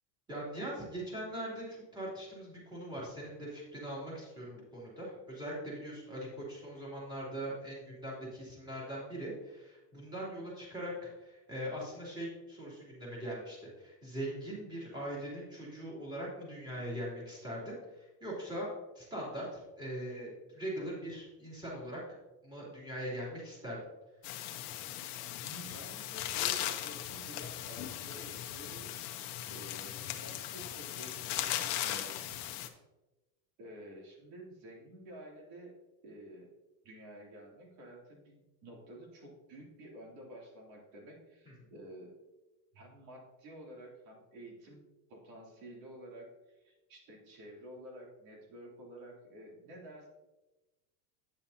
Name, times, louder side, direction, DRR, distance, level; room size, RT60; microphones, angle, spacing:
voice 1, 0.3-18.7 18.9-22.0 22.4-23.8, right 1 dB, 10° right, -6 dB, 2.9 m, -41 dB
sound 1, 24.2-32.7, left 12 dB, 50° left, 0.8 m, -38 dB
voice 2, 25.0-28.9 29.5-32.2 33.6-35.7 36.0-36.5 36.8-42.1 42.7-44.8 45.1-50.1, right 1 dB, 60° right, -1 dB, 2.9 m, -51 dB
8.9 x 7.1 x 2.8 m, 1.1 s
supercardioid pair, 145°, 50 cm